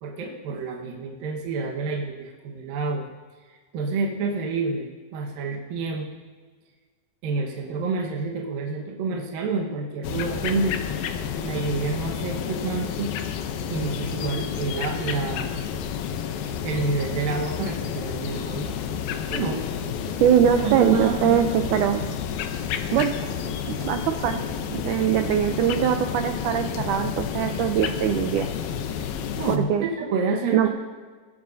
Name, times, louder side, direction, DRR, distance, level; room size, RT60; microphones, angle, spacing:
voice 1, 0.0-3.1 3.5-6.1 7.2-11.0 11.4-13.1 13.7-15.7 16.6-18.7 19.3-19.7 20.6-21.4 29.0-29.1 29.4-30.7, right 4 dB, 70° right, -1 dB, 3.0 m, -28 dB
sound 1, 10.0-29.6, left 8 dB, 75° left, 2.5 m, -30 dB
voice 2, 20.2-22.0 22.9-23.1 23.7-24.4 24.7-28.5 29.5-29.8 30.5-30.7, right 9 dB, 90° right, 5 dB, 1.7 m, -22 dB
21.0 x 14.5 x 2.7 m, 1.5 s
omnidirectional pair, 4.5 m